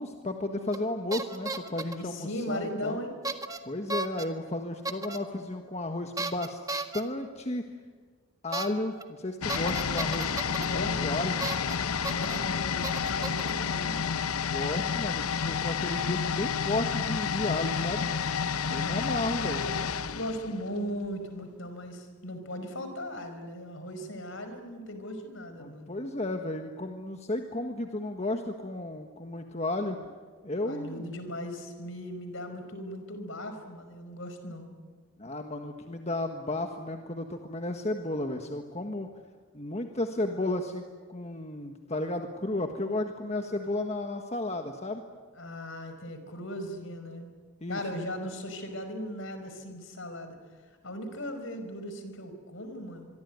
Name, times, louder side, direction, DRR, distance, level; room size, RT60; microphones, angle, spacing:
voice 1, 0.0-3.0 3.6-6.6 6.9-7.6 8.4-11.4 14.4-18.1 18.7-19.6 25.6-30.0 30.4-31.0 35.2-39.1 39.5-45.0 47.6-48.0, left 2 dB, 30° left, 4 dB, 1.5 m, -33 dB
sound 1, 0.7-0.9 1.1-2.0 3.2-3.6 3.9-4.3 4.9-5.2 6.2-7.0 8.5-8.7 9.0-9.1 9.5-10.7 11.4-11.8 12.0-12.4 12.8-13.5, right 3 dB, 15° right, 1.5 m, -34 dB
voice 2, 1.8-3.2 10.5-11.1 12.0-14.2 18.7-25.9 30.6-34.7 45.4-47.3 47.7-50.4 50.8-53.1, equal, 65° left, 8 dB, 5.1 m, -38 dB
sound 2, 9.4-21.1 21.4-21.5, left 6 dB, 90° left, 0.9 m, -30 dB
25.5 x 23.0 x 9.5 m, 1.5 s
head